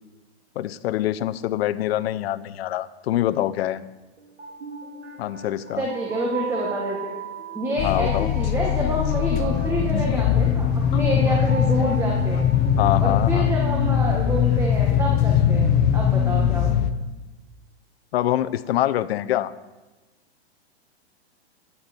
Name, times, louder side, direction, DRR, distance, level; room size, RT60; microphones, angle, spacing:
voice 1, 0.6-3.8 5.2-5.8 7.8-8.3 12.8-13.5 18.1-19.5, left 13 dB, 65° left, 13 dB, 0.7 m, -25 dB
sound 1, 4.2-15.3, right 6 dB, 90° right, 2.5 m, -39 dB
voice 2, 5.8-7.1 7.5-12.4 13.0-16.7, right 1 dB, 10° right, -1 dB, 1.6 m, -27 dB
sound 2, 7.8-16.9, left 9 dB, 30° left, 0.7 m, -21 dB
14.5 x 9.9 x 4.4 m, 1.1 s
hypercardioid pair, 135°, 33 cm